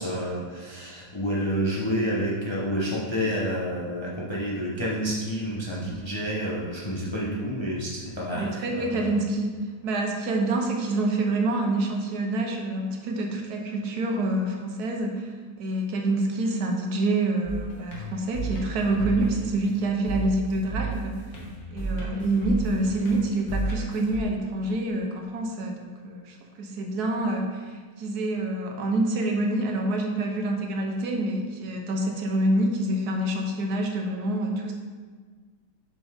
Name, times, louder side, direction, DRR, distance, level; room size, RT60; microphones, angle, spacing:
voice 1, 0.0-9.1, equal, 25° left, -5 dB, 0.6 m, -29 dB
voice 2, 8.3-9.5 9.8-15.3 15.6-21.3 21.7-34.7, right 2 dB, 75° right, 2 dB, 1.4 m, -27 dB
sound 1, 17.4-24.2, right 3 dB, 65° left, 1.7 m, -33 dB
7.2 x 5.1 x 3.5 m, 1.5 s
omnidirectional pair, 1.7 m